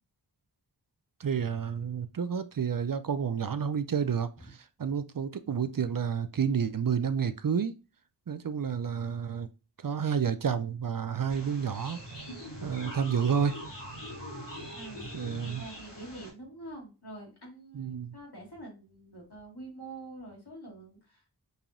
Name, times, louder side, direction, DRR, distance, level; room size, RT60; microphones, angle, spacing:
voice 1, 1.2-7.7 8.3-9.5 9.8-12.0 12.6-13.6 15.1-15.6 17.7-18.1, right 7 dB, 55° right, 0.5 m, -30 dB
sound 1, 11.3-16.3, equal, 90° left, 2.5 m, -42 dB
voice 2, 14.7-15.1 15.4-21.4, right 2 dB, 70° left, 2.3 m, -46 dB
5.5 x 2.9 x 2.5 m
wide cardioid pair, 40°, 41 cm